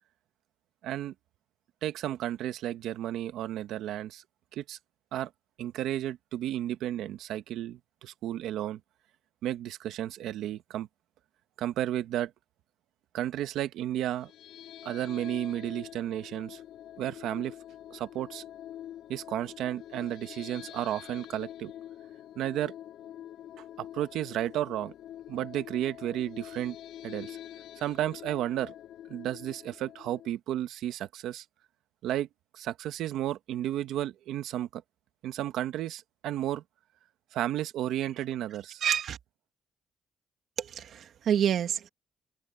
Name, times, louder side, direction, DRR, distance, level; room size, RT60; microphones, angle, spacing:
voice 1, 0.8-1.1 1.8-4.2 4.5-4.8 5.1-5.3 5.6-8.8 9.4-10.9 11.6-12.3 13.1-14.3 14.8-16.6 17.0-17.5 17.9-18.4 19.1-21.7 22.4-22.7 23.8-24.9 25.3-26.8 27.0-27.4 27.8-28.7 29.1-31.4 32.0-32.3 32.5-34.8 35.2-36.6 37.3-38.8, right 12 dB, 85° right, 1.4 m, -33 dB
sound 1, 14.2-30.3, left 11 dB, 80° left, 3.1 m, -46 dB
voice 2, 38.8-39.2 40.6-41.9, right 9 dB, 65° right, 2.4 m, -28 dB
open air
cardioid pair, 90°, 0 cm